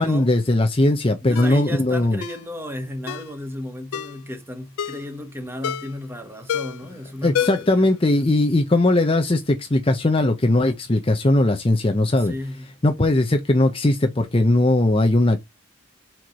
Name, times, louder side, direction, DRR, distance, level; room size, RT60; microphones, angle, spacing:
voice 1, 0.0-2.2 7.2-12.3 12.8-15.4, left 2 dB, 25° left, 0.7 m, -19 dB
voice 2, 1.2-7.9 12.2-12.7, left 1 dB, 10° right, 1.2 m, -34 dB
Ringtone, 1.3-1.6 2.2-2.4 3.1-3.3 3.9-4.2 4.8-5.1 5.6-6.0 6.5-6.9 7.3-7.8 8.1-8.2, left 9 dB, 85° left, 0.4 m, -28 dB
4.6 x 4.5 x 5.1 m
head